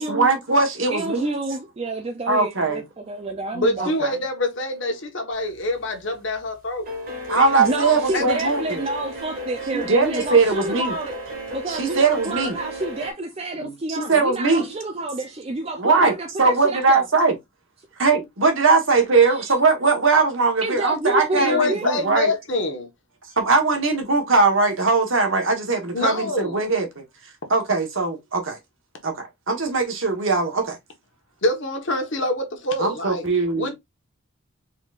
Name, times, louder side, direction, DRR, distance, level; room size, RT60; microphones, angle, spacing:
voice 1, 0.0-1.3 2.3-2.8 3.8-4.1 7.3-8.8 9.7-10.9 11.7-12.6 13.6-14.6 15.8-17.3 18.0-22.3 23.4-27.0 27.5-28.6 29.0-30.8 32.8-33.7, right 3 dB, 60° right, 1.2 m, -20 dB
voice 2, 0.9-4.0 7.6-11.1 11.5-17.1 19.2-19.6 20.6-21.9, right 2 dB, 25° right, 0.4 m, -29 dB
voice 3, 3.5-6.9 7.3-7.5 8.1-8.4 21.4-22.9 25.9-26.6 31.4-33.3 33.5-33.7, left 2 dB, 55° left, 1.1 m, -25 dB
sound 1, 5.5-5.9 6.2-13.1, equal, 40° right, 1.6 m, -34 dB
4.3 x 3.9 x 2.4 m
head